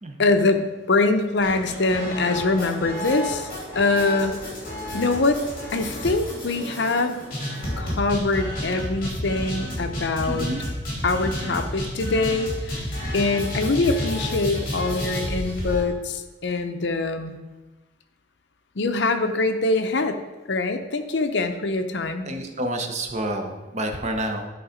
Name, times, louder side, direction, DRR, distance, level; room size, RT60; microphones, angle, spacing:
voice 1, 0.2-4.4 4.9-5.4 5.7-7.2 7.8-10.5 11.0-12.9 13.1-17.4 18.8-20.2 20.5-22.3, left 3 dB, 65° left, 7 dB, 0.6 m, -23 dB
sound 1, 1.4-15.8, equal, 45° left, 2.8 m, -31 dB
voice 2, 10.2-10.6 22.2-24.5, right 1 dB, 35° right, 5 dB, 0.8 m, -29 dB
11.0 x 4.0 x 5.0 m, 1.2 s
head